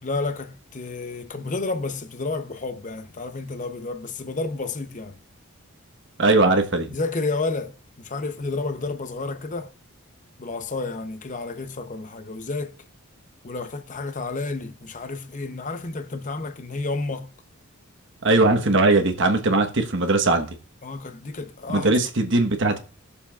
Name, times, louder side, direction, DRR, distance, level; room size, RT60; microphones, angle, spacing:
voice 1, 0.0-5.2 6.9-9.7 10.4-12.8 13.4-17.3 20.8-21.9 22.2-22.5, left 3 dB, 35° left, 0.8 m, -31 dB
voice 2, 6.2-6.9 18.2-20.6 21.7-22.8, right 2 dB, 60° right, 1.2 m, -20 dB
19.5 x 6.9 x 2.4 m
head